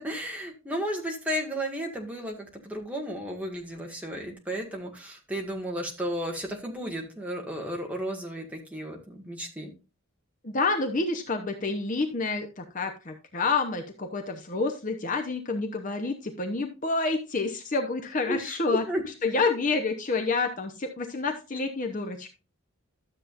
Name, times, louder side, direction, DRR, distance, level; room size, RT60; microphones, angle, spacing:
voice 1, 0.0-9.7 18.3-19.0, equal, 5° right, 0 dB, 1.7 m, -33 dB
voice 2, 10.4-18.8 19.2-22.3, left 3 dB, 35° left, 4 dB, 0.8 m, -28 dB
12.5 x 7.4 x 2.5 m, 0.30 s
head